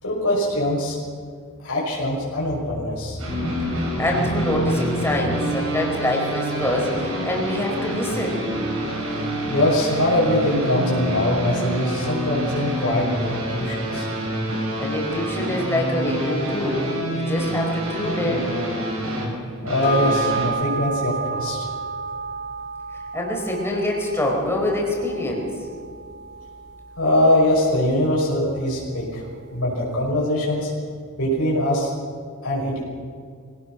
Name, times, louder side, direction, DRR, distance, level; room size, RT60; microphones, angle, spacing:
voice 1, 0.0-1.0 1.6-3.2 3.7-3.9 9.5-14.1 19.6-21.7 27.0-29.2 29.5-30.7 31.2-31.9 32.4-32.8, left 1 dB, 70° left, -4 dB, 6.1 m, -22 dB
sound 1, 3.2-20.5, right 1 dB, 65° right, 7.4 m, -27 dB
voice 2, 3.7-8.4 14.8-16.8 17.1-18.5 23.1-25.5, left 1 dB, 10° left, -1 dB, 4.9 m, -25 dB
sound 2, 19.8-28.6 28.9-29.0, right 3 dB, 50° left, 4.2 m, -31 dB
25.0 x 18.5 x 6.2 m, 2.3 s
head